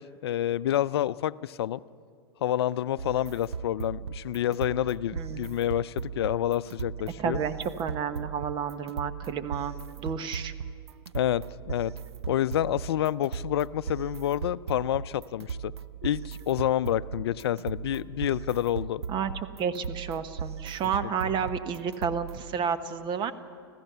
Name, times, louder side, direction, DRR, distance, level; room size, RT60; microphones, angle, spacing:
voice 1, 0.0-1.8 2.4-7.4 11.1-11.9 12.3-15.7 16.0-19.0, left 12 dB, 70° left, 18 dB, 0.5 m, -28 dB
sound 1, 3.0-22.6, right 6 dB, 85° right, 0.7 m, -38 dB
voice 2, 7.2-10.5 19.1-19.3 19.6-23.3, right 7 dB, 35° right, 10 dB, 1.1 m, -31 dB
26.5 x 15.5 x 6.9 m, 2.5 s
hypercardioid pair, 100°, 13 cm